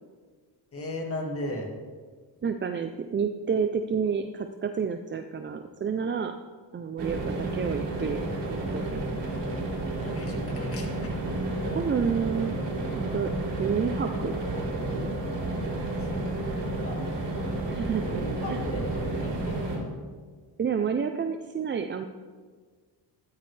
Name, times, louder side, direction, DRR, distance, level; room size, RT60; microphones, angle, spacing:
voice 1, 0.7-1.7 10.0-10.9 16.0-17.2 18.1-19.7, left 1 dB, 30° left, 0 dB, 2.0 m, -36 dB
voice 2, 2.4-6.4 6.7-8.2 8.5-9.2 11.7-12.6 13.1-13.3 13.6-14.4 14.9-15.2 17.7-18.2 18.5-18.6 20.6-22.0, right 6 dB, 30° right, 7 dB, 0.4 m, -29 dB
sound 1, 7.0-19.8, right 2 dB, 85° right, 4.2 m, -31 dB
13.5 x 12.5 x 3.3 m, 1.5 s
wide cardioid pair, 155°, 42 cm